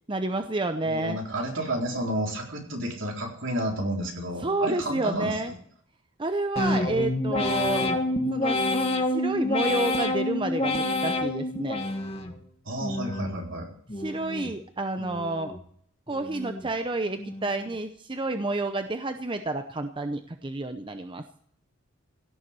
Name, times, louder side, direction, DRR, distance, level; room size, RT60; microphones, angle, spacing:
voice 1, 0.1-1.2 4.4-5.5 6.2-7.9 8.3-8.6 9.1-11.8 14.0-15.6 16.1-21.2, right 2 dB, 25° right, 7 dB, 0.7 m, -30 dB
voice 2, 0.8-5.4 12.7-13.7, right 1 dB, 65° right, 0 dB, 4.1 m, -31 dB
sound 1, 6.6-12.4 12.8-13.4 13.9-14.5 15.0-15.6 16.1-16.7 17.2-17.7, left 2 dB, 30° left, 1.5 m, -28 dB
16.5 x 7.1 x 8.1 m, 0.64 s
head